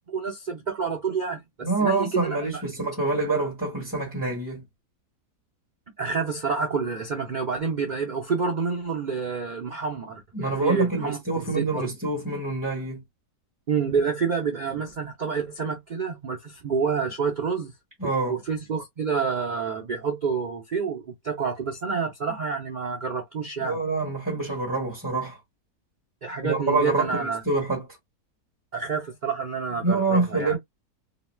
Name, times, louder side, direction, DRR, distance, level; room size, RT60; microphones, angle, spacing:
voice 1, 0.0-1.4 1.8-2.4 6.0-11.9 13.7-17.7 18.3-23.8 26.2-27.4 28.7-30.5, right 5 dB, 85° right, 0.4 m, -28 dB
voice 2, 1.6-4.6 10.3-13.0 18.0-18.4 23.6-25.4 26.4-27.9 29.7-30.6, right 3 dB, 15° right, 1.1 m, -26 dB
3.0 x 2.2 x 3.1 m
omnidirectional pair, 1.7 m